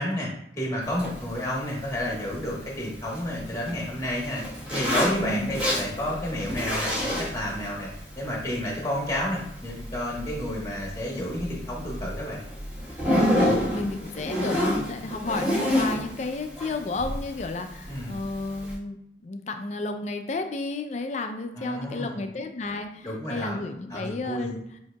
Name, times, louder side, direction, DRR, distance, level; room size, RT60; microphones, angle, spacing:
voice 1, 0.0-4.4 4.7-7.9 8.1-12.4 17.9-18.2 21.6-22.3 23.0-24.5, left 1 dB, 20° left, -3 dB, 1.1 m, -31 dB
Zipper (clothing), 0.8-18.7, equal, 5° right, 1.2 m, -30 dB
voice 2, 5.2-5.5 13.2-13.4 13.7-19.0 19.2-24.6, left 2 dB, 40° left, 6 dB, 0.4 m, -32 dB
7.4 x 2.7 x 2.2 m, 0.77 s
head